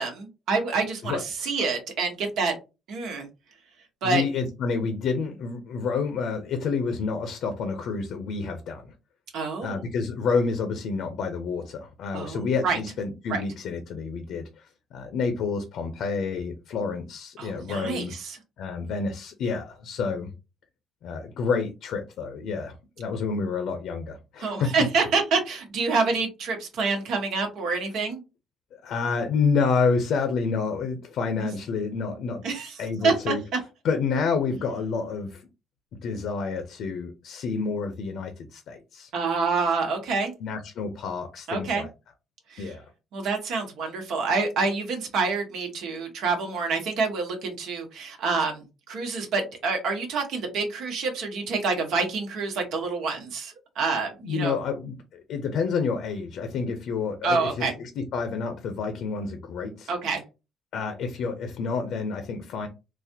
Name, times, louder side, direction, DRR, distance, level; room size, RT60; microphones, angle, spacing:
voice 1, 0.0-2.5 2.9-3.3 4.0-4.2 9.3-9.8 12.1-12.8 13.3-13.4 17.4-18.4 24.4-28.2 32.4-32.7 33.0-33.3 39.1-40.3 41.5-41.8 42.5-42.7 43.1-54.6 57.2-57.7 59.9-60.2, right 4 dB, 75° right, 1.2 m, -27 dB
voice 2, 1.0-1.5 4.0-8.9 9.6-14.7 14.9-18.1 18.6-20.3 21.0-24.7 28.7-32.5 32.8-33.4 33.8-35.4 36.0-39.1 40.4-41.9 42.6-42.9 54.2-59.9 60.7-62.7, left 5 dB, 70° left, 0.7 m, -29 dB
4.0 x 2.4 x 2.8 m
cardioid pair, 110°, 0 cm